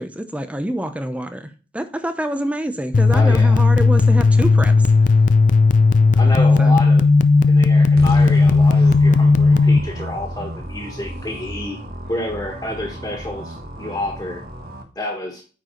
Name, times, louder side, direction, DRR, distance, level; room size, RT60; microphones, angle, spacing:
voice 1, 0.0-4.9 6.6-6.7, right 1 dB, 10° right, 8 dB, 0.7 m, -26 dB
sound 1, 2.9-9.8, left 3 dB, 45° left, 0.4 m, -14 dB
voice 2, 3.1-3.6 6.2-7.1 7.5-11.8 12.1-14.4 14.9-15.4, left 1 dB, 20° left, -1 dB, 1.6 m, -29 dB
sound 2, 8.0-14.8, right 1 dB, 60° right, 1.4 m, -33 dB
9.4 x 4.7 x 3.9 m, 0.36 s
head